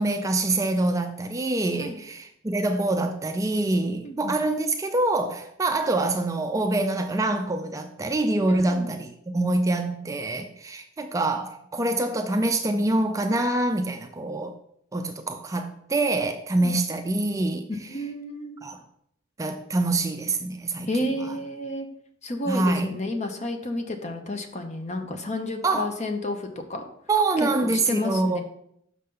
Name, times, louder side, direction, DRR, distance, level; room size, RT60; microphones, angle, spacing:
voice 1, 0.0-14.5 14.9-17.7 18.6-18.8 19.4-20.9 22.5-23.0 25.1-25.2 25.6-25.9 27.1-28.4, right 2 dB, 15° right, 0.4 m, -25 dB
voice 2, 4.0-4.4 8.5-8.9 16.6-16.7 17.9-18.6 20.9-21.9 22.2-26.8 27.4-28.4, left 1 dB, 35° left, 0.8 m, -31 dB
6.4 x 5.5 x 3.7 m
head